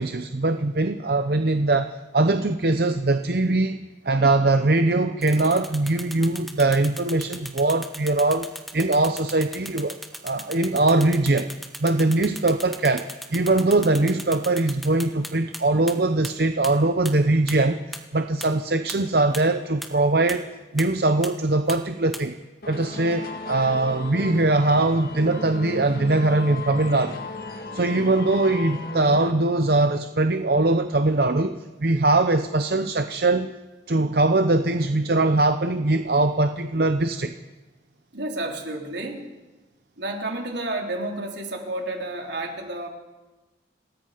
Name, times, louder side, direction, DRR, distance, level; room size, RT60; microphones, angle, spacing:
voice 1, 0.0-3.8 4.0-8.5 8.7-10.0 10.2-11.5 11.8-13.1 13.3-17.8 18.1-20.5 20.7-22.3 22.7-27.2 27.7-33.5 33.9-37.3, right 2 dB, 60° right, 8 dB, 0.8 m, -21 dB
sound 1, 5.2-15.6 15.9-16.0 16.2-16.3 16.6-16.7 17.1-17.2 17.5-17.6 17.9-18.0 18.4-18.5 18.9-19.0 19.3-19.4 19.8-19.9 20.3-20.4 20.8-20.9 21.2-21.3 21.7-21.8 22.1-22.2, equal, ahead, 1.4 m, -36 dB
sound 2, 22.6-29.3, left 3 dB, 55° left, 2.0 m, -35 dB
voice 2, 38.1-39.3 40.0-42.9, right 2 dB, 80° right, 1 dB, 3.7 m, -31 dB
27.0 x 19.0 x 5.1 m, 1.2 s
head